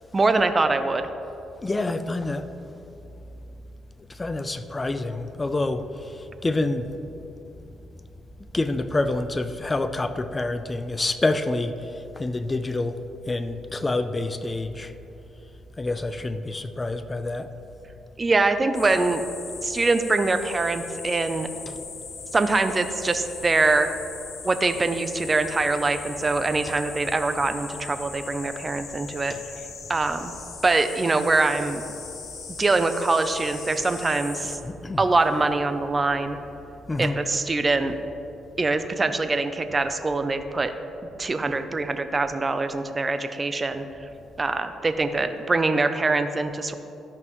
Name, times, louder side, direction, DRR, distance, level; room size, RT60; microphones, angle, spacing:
voice 1, 0.1-1.1 18.2-19.2 19.6-21.5 22.3-23.9 24.4-29.3 29.9-30.3 30.6-31.9 32.6-34.6 35.0-36.4 37.0-37.9 38.6-40.7 41.2-44.1 44.4-46.7, right 3 dB, 25° right, 9 dB, 0.5 m, -23 dB
voice 2, 1.6-2.5 4.2-7.0 8.5-11.7 12.2-13.0 13.3-14.9 15.8-17.5 21.7-21.8 29.3-29.4 34.6-35.0 36.9-37.2, left 2 dB, 20° left, 11 dB, 0.5 m, -27 dB
sound 1, 18.7-34.6, left 5 dB, 70° left, 1.1 m, -39 dB
13.0 x 5.4 x 3.1 m, 2.9 s
cardioid pair, 90°, 0 cm